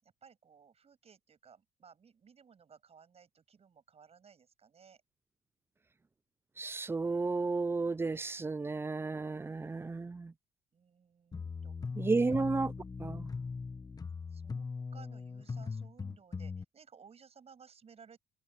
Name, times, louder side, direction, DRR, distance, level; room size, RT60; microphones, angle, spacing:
voice 1, 0.0-5.0 10.7-11.9 12.3-12.5 14.3-18.2, right 6 dB, 35° right, 7.5 m, -59 dB
voice 2, 6.6-10.3 12.0-12.7 13.0-13.3, right 3 dB, 15° right, 0.4 m, -33 dB
sound 1, 11.3-16.6, left 4 dB, 20° left, 1.1 m, -40 dB
cardioid pair, 110°, 17 cm